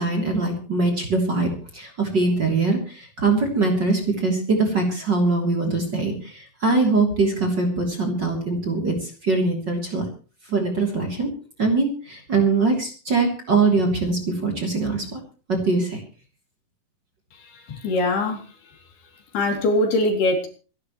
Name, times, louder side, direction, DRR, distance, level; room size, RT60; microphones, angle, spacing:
voice 1, 0.0-10.1 10.5-11.3 11.6-15.2 15.5-16.0, right 3 dB, 30° right, 2 dB, 3.3 m, -22 dB
voice 2, 17.4-18.4 19.3-20.5, left 2 dB, 70° left, 4 dB, 4.8 m, -22 dB
26.5 x 11.5 x 3.1 m, 0.37 s
omnidirectional pair, 4.7 m